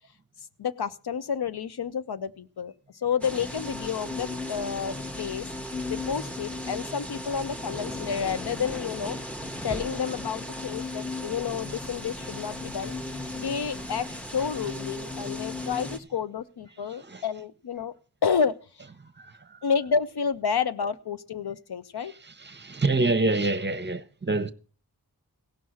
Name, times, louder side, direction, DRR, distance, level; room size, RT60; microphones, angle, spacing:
voice 1, 0.6-5.5 5.9-9.2 9.6-12.9 13.3-14.1 14.3-17.9 18.2-18.6 19.6-22.1, left 6 dB, 75° left, 0.7 m, -30 dB
sound 1, 3.2-16.0, left 2 dB, 5° left, 0.9 m, -36 dB
voice 2, 22.4-24.5, right 2 dB, 25° right, 0.9 m, -26 dB
16.5 x 5.6 x 6.3 m
wide cardioid pair, 70°, 39 cm